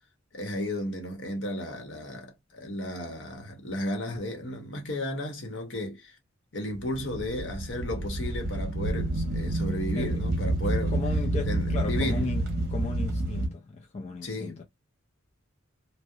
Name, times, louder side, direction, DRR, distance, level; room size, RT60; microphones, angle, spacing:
voice 1, 0.3-6.2 6.5-11.0 11.5-12.3 14.2-14.6, left 1 dB, 60° left, 0.8 m, -34 dB
sound 1, 6.7-13.5, right 1 dB, 50° right, 0.8 m, -29 dB
voice 2, 10.9-14.6, left 3 dB, 35° left, 0.4 m, -36 dB
2.4 x 2.0 x 2.7 m
head